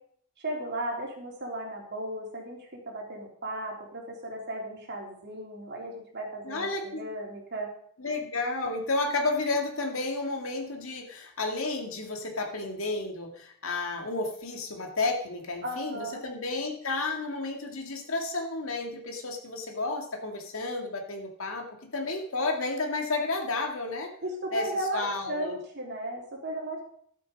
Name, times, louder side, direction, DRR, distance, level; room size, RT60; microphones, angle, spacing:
voice 1, 0.4-7.7 15.6-16.2 24.2-26.8, right 1 dB, 55° right, -1 dB, 3.8 m, -35 dB
voice 2, 6.4-7.1 8.0-21.7 21.9-24.1 24.5-24.7 24.9-25.5, left 3 dB, 65° left, 2 dB, 2.2 m, -31 dB
12.5 x 8.5 x 5.3 m, 0.63 s
head